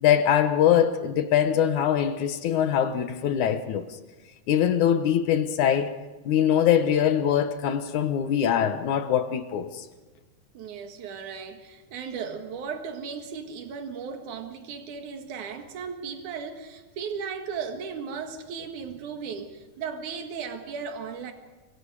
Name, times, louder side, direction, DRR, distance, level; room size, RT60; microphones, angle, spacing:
voice 1, 0.0-3.8 4.5-5.9 6.3-9.8, left 9 dB, 75° left, 2.8 m, -23 dB
voice 2, 10.5-21.3, right 6 dB, 75° right, 3.3 m, -36 dB
28.5 x 25.0 x 5.0 m
omnidirectional pair, 3.5 m